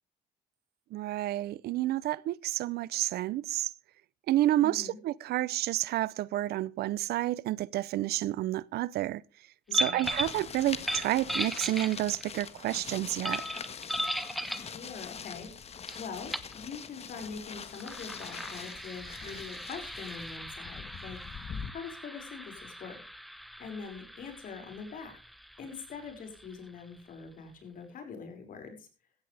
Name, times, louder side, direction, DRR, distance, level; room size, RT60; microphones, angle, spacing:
voice 1, 0.9-3.7 4.3-9.2 9.7-13.4, right 15 dB, 70° right, 0.6 m, -30 dB
voice 2, 4.6-5.0 9.7-10.1 14.4-23.0 23.6-25.2 25.6-28.9, left 5 dB, 55° left, 5.7 m, -44 dB
sound 1, 9.7-10.4 10.8-12.3 13.2-14.7 15.9-16.0 16.3-16.5 17.6-26.9, equal, ahead, 1.4 m, -37 dB
sound 2, 10.0-21.7, left 6 dB, 40° left, 1.5 m, -44 dB
16.0 x 14.5 x 3.4 m
cardioid pair, 110°, 17 cm